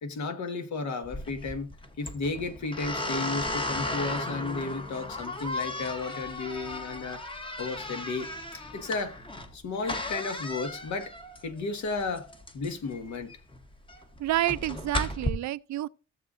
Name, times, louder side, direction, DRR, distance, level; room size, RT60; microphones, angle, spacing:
voice 1, 0.0-1.7 2.0-7.2 7.6-9.2 9.5-11.1 11.4-12.3 12.5-13.3, left 3 dB, 70° left, 1.5 m, -33 dB
sound 1, 1.0-15.3, left 1 dB, 15° left, 1.0 m, -35 dB
voice 2, 14.2-15.9, right 14 dB, 70° right, 0.4 m, -29 dB
14.5 x 7.1 x 2.5 m
wide cardioid pair, 150°, 30 cm